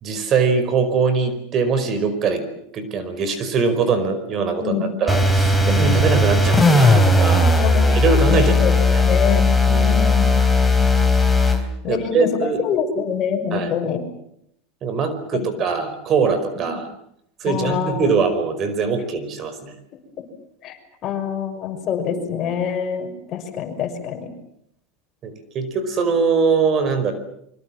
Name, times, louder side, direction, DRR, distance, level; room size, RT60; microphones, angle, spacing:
voice 1, 0.0-2.5 2.7-7.5 7.9-9.0 9.7-10.1 11.5-12.6 13.5-13.8 14.8-16.9 17.4-19.7 25.2-27.1, right 5 dB, 35° right, 10 dB, 5.0 m, -22 dB
voice 2, 4.6-5.1 5.6-5.9 7.6-8.7 9.0-10.2 11.8-12.3 12.6-14.0 16.6-16.7 17.4-18.1 20.6-24.3, left 7 dB, 40° left, 5 dB, 6.2 m, -26 dB
sound 1, 5.1-11.6, left 2 dB, 5° left, 3.9 m, -16 dB
26.0 x 25.0 x 7.6 m, 0.74 s
supercardioid pair, 125°, 0 cm